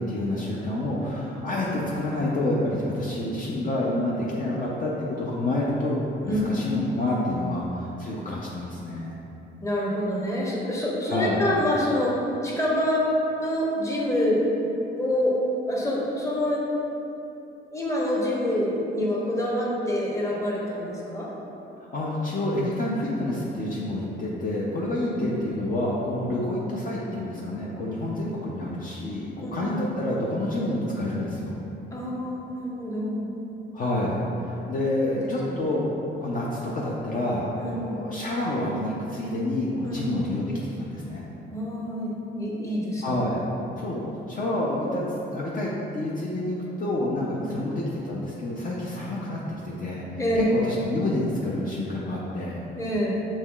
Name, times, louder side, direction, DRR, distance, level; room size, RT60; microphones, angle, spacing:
voice 1, 0.0-6.0 6.2-9.2 11.1-11.5 21.9-31.6 33.7-35.9 36.2-41.3 43.0-43.4 43.8-44.0 44.3-45.0 45.3-50.0 50.4-52.6, left 1 dB, 45° left, -5 dB, 0.6 m, -28 dB
voice 2, 6.2-6.6 9.6-12.2 12.4-14.4 15.0-15.4 15.7-16.6 17.7-21.3 24.8-25.3 26.2-26.4 29.4-29.7 31.9-33.3 35.1-35.2 35.4-35.6 37.6-38.0 39.8-40.1 41.5-43.1 47.4-47.6 50.2-50.5 52.7-53.3, left 1 dB, 15° left, -5 dB, 0.9 m, -27 dB
5.5 x 3.1 x 2.3 m, 3.0 s
cardioid pair, 90°, 20 cm